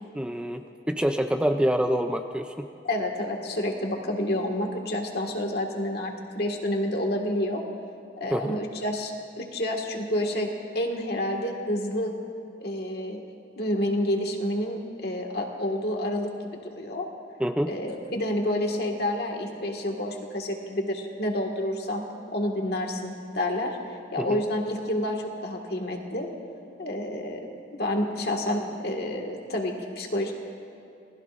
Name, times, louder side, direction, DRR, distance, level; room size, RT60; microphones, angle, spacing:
voice 1, 0.1-2.7 8.3-8.6 17.4-17.7 24.2-24.4, equal, 5° right, 6 dB, 0.4 m, -26 dB
voice 2, 2.8-7.6 8.2-10.5 10.7-12.1 12.6-13.2 13.6-17.1 17.7-22.0 22.3-26.3 26.8-27.5 27.8-30.3, left 1 dB, 60° left, 1 dB, 1.8 m, -29 dB
28.5 x 20.0 x 2.5 m, 2.6 s
head